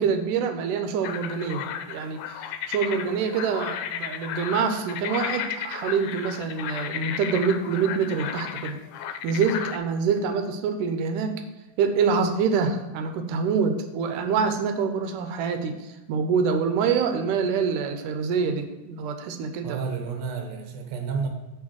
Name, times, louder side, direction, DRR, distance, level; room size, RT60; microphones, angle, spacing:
voice 1, 0.0-2.3 2.7-8.8 9.2-11.4 11.8-19.8, right 5 dB, 80° right, 7 dB, 2.2 m, -26 dB
sound 1, 1.0-9.8, left 9 dB, 90° left, 2.3 m, -34 dB
voice 2, 19.6-21.3, right 5 dB, 65° right, 3 dB, 1.9 m, -30 dB
7.2 x 4.5 x 6.2 m, 1.0 s
omnidirectional pair, 3.8 m